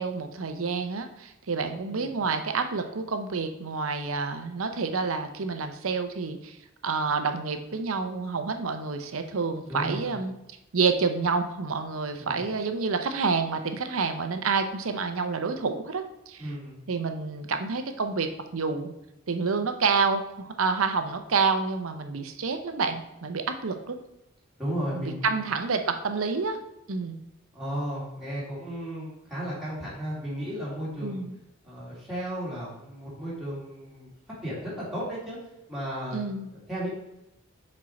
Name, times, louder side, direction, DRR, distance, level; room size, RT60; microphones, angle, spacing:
voice 1, 0.0-6.6 6.8-10.3 10.7-16.4 16.9-18.9 19.3-20.2 20.6-23.9 24.9-26.6 26.9-27.2 31.0-31.3 36.1-36.5, right 4 dB, 70° right, 7 dB, 0.7 m, -28 dB
voice 2, 9.6-10.2 12.2-12.5 16.4-16.8 24.6-25.4 27.5-31.2 31.6-34.1 34.4-35.4 35.7-36.2 36.5-36.9, right 1 dB, ahead, -8 dB, 2.1 m, -34 dB
6.3 x 4.4 x 4.3 m, 0.91 s
head